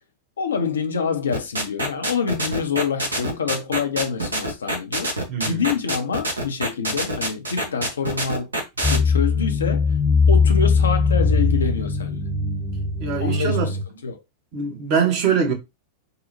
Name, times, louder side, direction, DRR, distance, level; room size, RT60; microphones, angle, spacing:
voice 1, 0.4-5.1 5.4-8.5 8.9-10.0 10.3-12.3 13.2-13.8 14.0-14.2, left 6 dB, 70° left, 0.4 m, -26 dB
sound 1, 1.3-9.0, right 1 dB, 75° right, 0.7 m, -25 dB
voice 2, 5.3-5.6 13.0-13.7 14.5-15.5, right 6 dB, 45° right, 0.9 m, -23 dB
sound 2, 8.8-13.8, left 4 dB, 10° left, 0.5 m, -20 dB
2.8 x 2.0 x 2.7 m
figure-of-eight pair, 90°, 0 cm